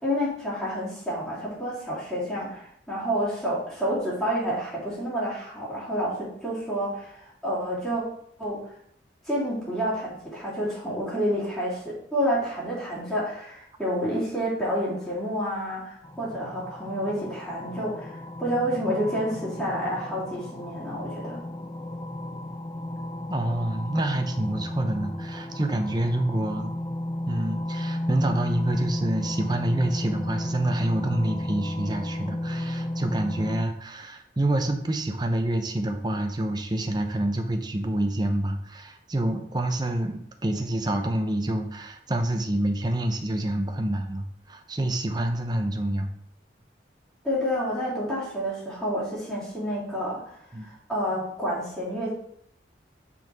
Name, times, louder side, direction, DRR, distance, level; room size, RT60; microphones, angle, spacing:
voice 1, 0.0-8.0 8.4-8.6 9.2-21.4 47.2-52.1, equal, ahead, -10 dB, 2.8 m, -29 dB
sound 1, 16.0-33.7, left 1 dB, 20° left, 0.3 m, -33 dB
voice 2, 23.3-26.7 27.3-46.1 50.5-50.7, right 1 dB, 25° right, 5 dB, 0.7 m, -27 dB
5.8 x 4.5 x 4.7 m, 0.68 s
head